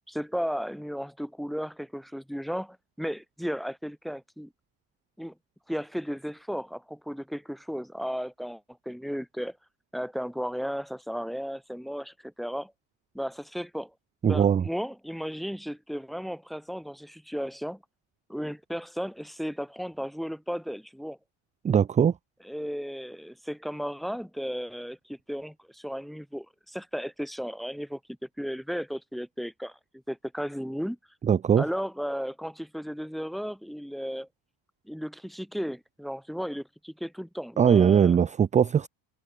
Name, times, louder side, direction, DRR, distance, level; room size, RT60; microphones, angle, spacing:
voice 1, 0.1-4.5 5.2-5.3 5.7-9.6 9.9-12.7 13.1-13.9 14.2-17.8 18.3-21.2 22.4-29.8 30.1-31.0 31.6-34.3 34.9-38.2, equal, ahead, 0.9 m, -35 dB
voice 2, 14.2-14.6 21.6-22.1 31.3-31.6 37.6-38.9, right 8 dB, 15° right, 0.3 m, -20 dB
cardioid pair, 175°, 49 cm